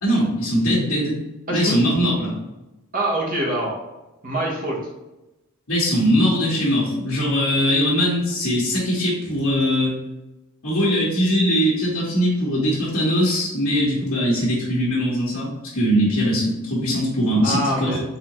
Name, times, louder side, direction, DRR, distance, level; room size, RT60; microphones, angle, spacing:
voice 1, 0.0-1.2 1.5-2.4 5.7-10.0 10.6-18.0, equal, 65° left, -10 dB, 1.3 m, -21 dB
voice 2, 1.5-1.8 2.9-3.7 4.2-4.8 17.4-18.0, right 1 dB, 40° right, -2 dB, 1.1 m, -24 dB
4.0 x 3.8 x 3.0 m, 0.99 s
head